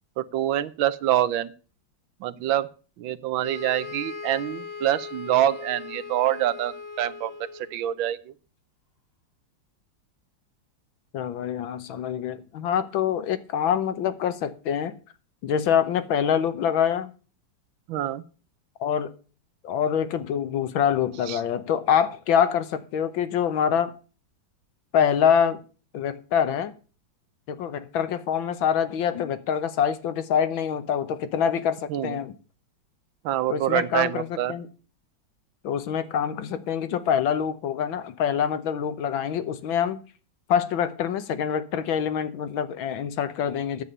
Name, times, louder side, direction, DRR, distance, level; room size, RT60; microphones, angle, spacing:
voice 1, 0.2-1.5 2.2-2.7 3.0-8.3 17.9-18.2 21.3-21.4 31.9-32.2 33.2-34.5, right 12 dB, 85° right, 1.5 m, -26 dB
sound 1, 3.4-7.8, left 5 dB, 40° left, 1.9 m, -39 dB
voice 2, 11.1-14.9 15.4-17.1 18.8-19.1 19.6-23.9 24.9-25.6 25.9-26.7 27.5-32.3 33.5-34.7 35.6-40.0 40.5-43.8, left 8 dB, 85° left, 1.7 m, -25 dB
9.7 x 7.5 x 6.5 m
omnidirectional pair, 2.1 m